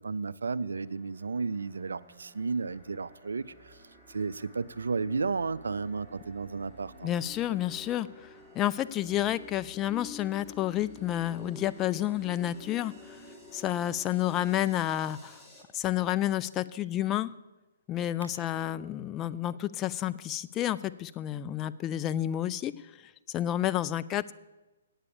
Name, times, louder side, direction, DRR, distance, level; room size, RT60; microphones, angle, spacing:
voice 1, 0.0-3.8 4.1-7.1 18.2-18.4, right 4 dB, 75° right, 15 dB, 0.4 m, -33 dB
sound 1, 0.7-15.6, left 2 dB, ahead, 1.8 m, -50 dB
voice 2, 7.0-13.2 13.5-15.4 15.7-17.3 17.9-22.7 23.3-24.4, left 12 dB, 20° left, 13 dB, 0.3 m, -30 dB
8.8 x 8.3 x 6.9 m, 1.1 s
figure-of-eight pair, 135°, 0 cm